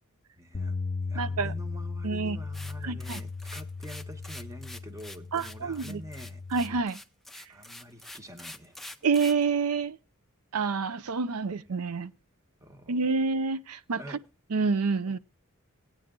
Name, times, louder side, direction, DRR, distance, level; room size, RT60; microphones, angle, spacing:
voice 1, 0.4-0.8 1.1-6.4 7.5-8.8 12.6-13.0 14.0-14.2 15.1-15.2, equal, 15° right, 1.1 m, -46 dB
Bass guitar, 0.5-6.8, left 4 dB, 40° left, 0.8 m, -37 dB
voice 2, 1.1-1.5 2.0-2.4 2.8-3.2 5.3-6.0 6.5-7.0 9.0-10.0 10.5-12.1 12.9-14.2 14.5-15.2, right 4 dB, 85° right, 0.6 m, -28 dB
sound 1, 2.5-9.4, left 1 dB, ahead, 0.6 m, -45 dB
17.5 x 9.0 x 3.7 m
head